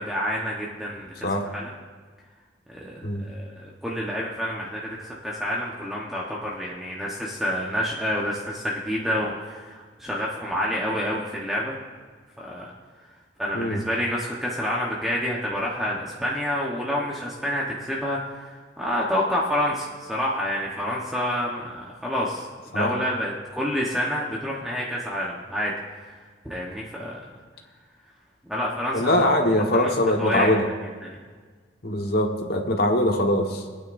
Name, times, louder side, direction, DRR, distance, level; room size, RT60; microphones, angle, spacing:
voice 1, 0.0-1.1 1.5-1.7 2.7-11.7 12.4-12.7 13.4-25.7 26.0-27.3 28.5-29.3 29.7-29.9 30.2-30.5 31.0-31.2, equal, ahead, -5 dB, 1.1 m, -28 dB
voice 2, 28.9-30.7 31.8-33.6, left 1 dB, 55° left, 2 dB, 1.4 m, -22 dB
22.0 x 9.3 x 2.6 m, 1.5 s
head